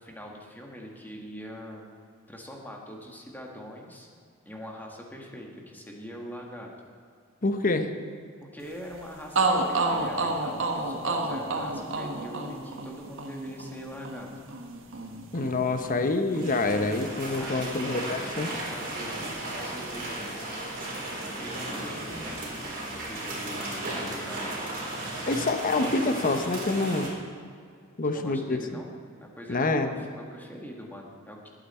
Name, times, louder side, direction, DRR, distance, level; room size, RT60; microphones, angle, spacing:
voice 1, 0.0-1.9 2.3-4.1 4.4-6.7 8.4-14.3 17.4-20.4 21.2-22.5 22.9-24.6 28.0-28.9 29.2-31.5, equal, 10° left, 0 dB, 1.8 m, -43 dB
voice 2, 7.4-7.9 15.3-18.5 25.3-27.1 28.0-28.6 29.5-29.9, left 3 dB, 40° left, 8 dB, 0.8 m, -26 dB
sound 1, 8.9-9.0 9.3-17.2 17.5-18.6, right 2 dB, 65° right, 1.3 m, -31 dB
sound 2, 16.3-27.1, right 1 dB, 45° right, 4.1 m, -35 dB
19.5 x 9.1 x 4.4 m, 2.2 s
head